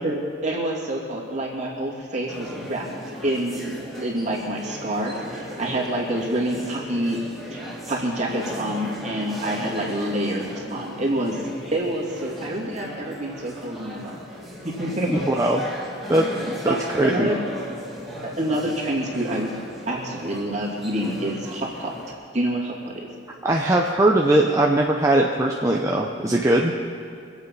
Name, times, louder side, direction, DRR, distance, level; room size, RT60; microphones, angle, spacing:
voice 1, 0.0-2.9 3.2-3.6 4.0-7.2 7.5-11.4 11.7-14.1 14.6-15.1 16.7-16.8 17.0-17.4 18.2-19.5 19.9-21.9 22.3-23.1, right 1 dB, 35° right, -3 dB, 2.7 m, -27 dB
sound 1, 2.3-22.1, left 1 dB, ahead, 2.8 m, -37 dB
voice 2, 15.1-15.6 16.1-17.3 23.4-26.7, right 1 dB, 15° right, -1 dB, 0.7 m, -20 dB
25.0 x 8.4 x 5.6 m, 2.4 s
head